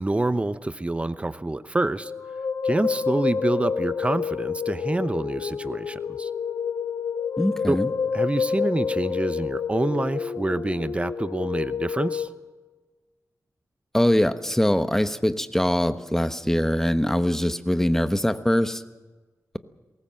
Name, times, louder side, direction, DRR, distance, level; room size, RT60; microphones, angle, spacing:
voice 1, 0.0-2.1 2.6-6.3 7.7-7.8 8.1-12.3, right 2 dB, 20° right, 13 dB, 0.8 m, -27 dB
sound 1, 2.0-12.3, left 6 dB, 80° left, 1.3 m, -28 dB
voice 2, 7.4-7.9 13.9-18.8, equal, 5° left, 11 dB, 1.1 m, -22 dB
21.0 x 18.5 x 7.6 m, 1.3 s
cardioid pair, 75°, 6 cm